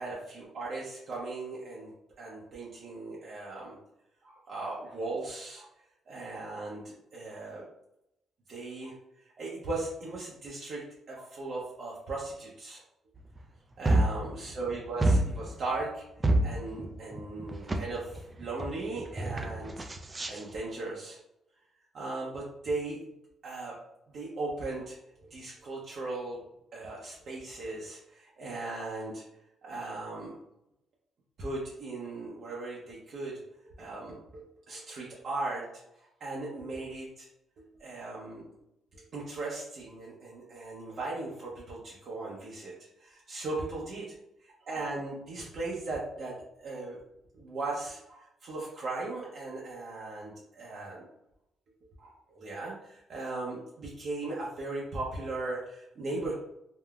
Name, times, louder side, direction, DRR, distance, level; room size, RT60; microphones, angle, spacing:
voice 1, 0.0-1.9 2.2-3.8 4.2-5.7 6.1-7.6 8.5-8.9 9.4-12.8 13.8-16.0 16.4-19.9 20.3-21.2 21.9-23.0 23.4-23.7 24.1-25.0 25.3-26.4 26.7-29.2 29.6-30.4 31.4-35.6 36.2-37.3 37.6-38.5 38.9-42.7 43.0-44.1 44.6-46.3 46.6-47.0 47.3-51.1 52.0-56.3, right 2 dB, 60° right, -5 dB, 0.7 m, -38 dB
sound 1, 13.4-13.5 13.8-14.7 15.0-15.8 16.2-17.8 18.1-18.7 19.0-20.4, right 1 dB, 25° right, 0.3 m, -27 dB
3.6 x 2.1 x 2.3 m, 0.83 s
cardioid pair, 90°, 0 cm